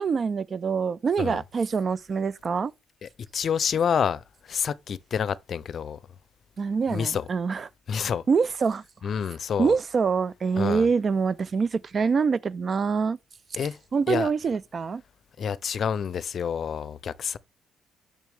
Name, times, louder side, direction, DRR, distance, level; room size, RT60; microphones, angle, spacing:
voice 1, 0.0-2.7 6.6-7.7 8.3-9.1 9.6-13.2 13.9-15.0, right 5 dB, 45° right, 0.4 m, -25 dB
voice 2, 3.0-6.0 6.9-7.3 7.9-8.2 9.0-9.7 10.6-10.9 13.6-13.8 14.1-14.3 15.4-17.4, left 7 dB, 55° left, 0.5 m, -28 dB
6.6 x 6.1 x 3.5 m
cardioid pair, 90°, 0 cm